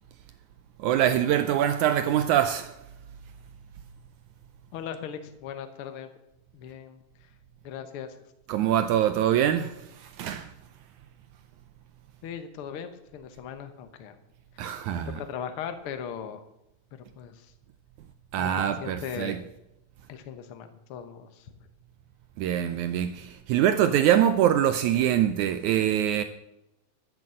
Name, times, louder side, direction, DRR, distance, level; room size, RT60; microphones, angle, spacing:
voice 1, 0.8-2.8 8.5-10.5 14.6-15.2 18.3-19.4 22.4-26.2, right 10 dB, 85° right, 1.7 m, -24 dB
voice 2, 4.7-6.1 6.5-7.0 7.6-8.1 12.2-14.2 15.3-16.4 17.1-17.5 18.3-18.5 18.8-19.4 20.1-21.5, left 8 dB, 85° left, 1.2 m, -38 dB
12.5 x 8.5 x 7.7 m
omnidirectional pair, 4.2 m